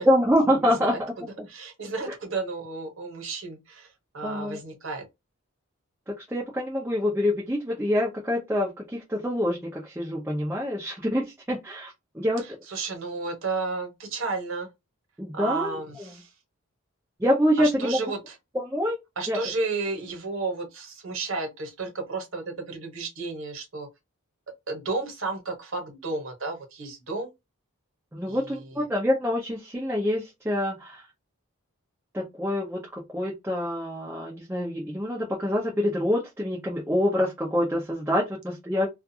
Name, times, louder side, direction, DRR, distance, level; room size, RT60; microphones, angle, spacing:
voice 1, 0.0-1.0 4.2-4.6 6.1-12.4 15.2-15.8 17.2-18.0 18.5-19.0 19.3-19.4 28.1-31.0 32.1-38.9, equal, 10° right, 0.5 m, -26 dB
voice 2, 0.6-3.9 4.1-5.0 12.4-14.7 15.3-16.3 17.6-18.4 19.2-23.9 24.7-27.3 28.3-28.8, right 3 dB, 60° right, 1.1 m, -33 dB
2.4 x 2.3 x 2.6 m
head